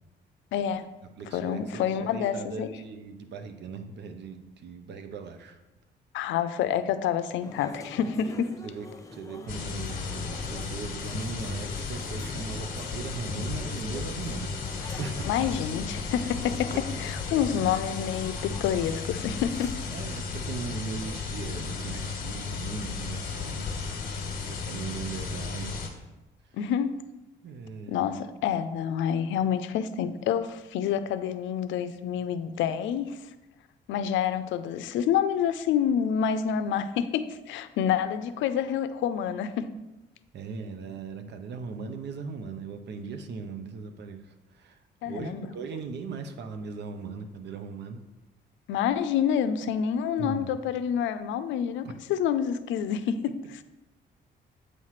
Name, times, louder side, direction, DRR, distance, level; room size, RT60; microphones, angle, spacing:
voice 1, 0.5-0.9 1.3-2.7 6.1-8.5 15.3-16.7 17.0-19.8 26.6-26.9 27.9-33.2 33.9-39.7 45.0-45.5 48.7-53.6, left 8 dB, 90° left, 11 dB, 0.5 m, -28 dB
voice 2, 1.2-1.6 2.0-5.6 8.6-8.9 9.1-14.5 15.0-15.3 19.9-23.9 24.2-25.8 26.4-26.6 27.4-28.1 40.3-44.8 45.0-48.0 50.2-50.6 51.8-51.9, right 5 dB, 65° right, 7 dB, 0.7 m, -39 dB
sound 1, 7.4-19.9, left 2 dB, 15° left, 0.6 m, -46 dB
sound 2, 9.5-25.9, left 4 dB, 50° left, 1.2 m, -34 dB
8.0 x 3.1 x 5.7 m, 1.0 s
cardioid pair, 120°, 19 cm